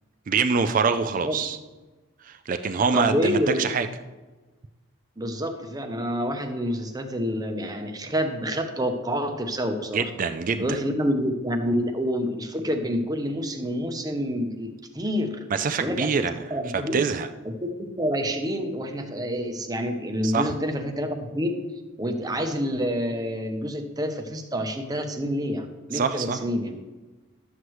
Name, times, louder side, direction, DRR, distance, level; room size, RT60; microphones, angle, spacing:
voice 1, 0.3-1.6 2.2-3.9 9.9-10.8 15.5-16.3 16.9-17.3 20.2-20.5 25.9-26.4, right 5 dB, 40° right, 9 dB, 0.4 m, -24 dB
voice 2, 1.0-1.3 2.9-3.7 5.2-10.1 10.6-15.4 15.8-17.0 17.4-21.6 22.0-26.9, equal, 15° right, 6 dB, 0.7 m, -28 dB
11.5 x 7.8 x 3.1 m, 1.2 s
head